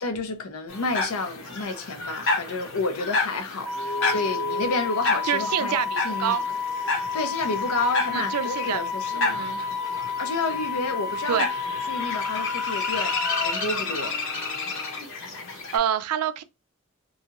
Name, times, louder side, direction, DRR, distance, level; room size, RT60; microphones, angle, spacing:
voice 1, 0.0-5.8 6.0-6.4 7.1-9.5 10.2-11.5 11.9-13.2 13.4-14.2, left 3 dB, 80° left, 0.6 m, -30 dB
sound 1, 0.7-15.8, left 3 dB, 60° left, 0.8 m, -31 dB
Wind instrument woodwind instrument, 3.6-13.5, left 5 dB, 5° right, 0.5 m, -30 dB
voice 2, 5.2-6.4 8.1-8.8 9.1-9.6 11.3-11.5 15.5-16.4, right 9 dB, 90° right, 0.4 m, -27 dB
2.7 x 2.3 x 2.8 m
head